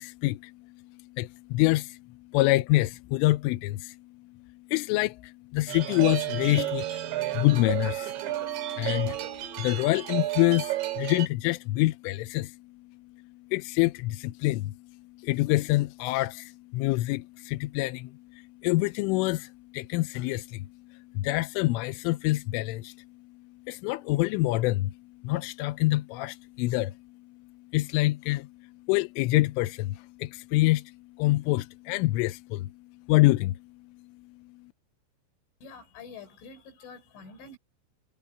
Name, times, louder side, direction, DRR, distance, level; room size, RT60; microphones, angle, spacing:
voice 1, 0.0-8.2 8.7-32.7 33.1-33.7 34.0-34.1 34.4-34.7, left 19 dB, 90° left, 3.2 m, -27 dB
sound 1, 5.7-11.3, right 14 dB, 65° right, 4.1 m, -32 dB
voice 2, 35.6-37.6, left 4 dB, 70° left, 7.0 m, -46 dB
omnidirectional pair, 5.7 m